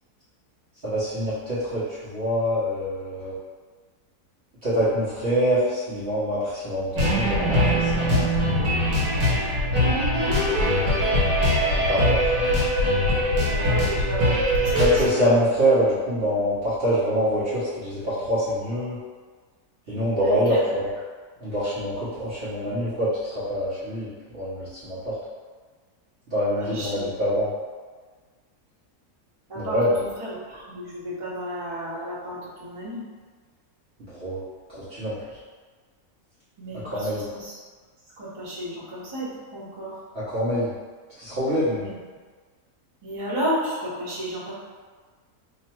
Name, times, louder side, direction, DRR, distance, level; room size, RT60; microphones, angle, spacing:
voice 1, 0.8-3.3 4.6-6.9 7.1-8.5 11.8-12.3 14.8-19.0 19.9-20.9 21.4-25.1 26.3-27.5 29.5-29.9 34.0-34.4 34.7-35.4 36.8-37.2 40.1-40.7 41.2-41.9, equal, 45° right, -12 dB, 1.2 m, -25 dB
sound 1, 7.0-15.1, equal, 70° right, 1.4 m, -22 dB
voice 2, 13.3-14.7 20.2-20.7 26.6-27.1 29.5-33.0 36.6-37.5 38.2-40.0 41.8-42.0 43.0-44.5, equal, 25° right, -11 dB, 1.1 m, -32 dB
3.0 x 2.4 x 4.3 m, 1.5 s
omnidirectional pair, 1.7 m